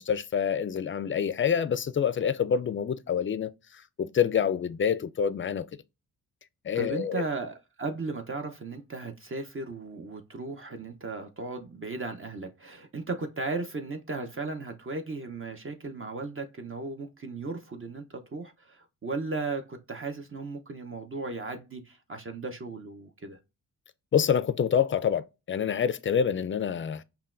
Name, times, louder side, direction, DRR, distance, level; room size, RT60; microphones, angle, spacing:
voice 1, 0.0-3.5 4.0-5.7 6.6-7.2 24.1-27.0, left 7 dB, 35° left, 0.4 m, -27 dB
voice 2, 6.7-23.4, right 3 dB, 35° right, 0.7 m, -36 dB
5.6 x 2.3 x 2.4 m
supercardioid pair, 55°, 39 cm